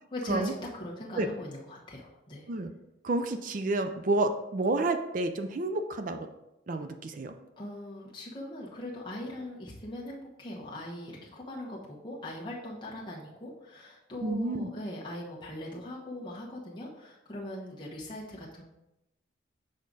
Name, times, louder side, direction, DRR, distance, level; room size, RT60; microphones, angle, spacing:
voice 1, 0.1-2.5 7.6-18.6, left 1 dB, 25° left, -5 dB, 1.1 m, -40 dB
voice 2, 3.0-6.3 6.7-7.3 14.2-14.7, right 2 dB, 45° right, 8 dB, 0.4 m, -30 dB
6.5 x 4.9 x 4.0 m, 0.90 s
head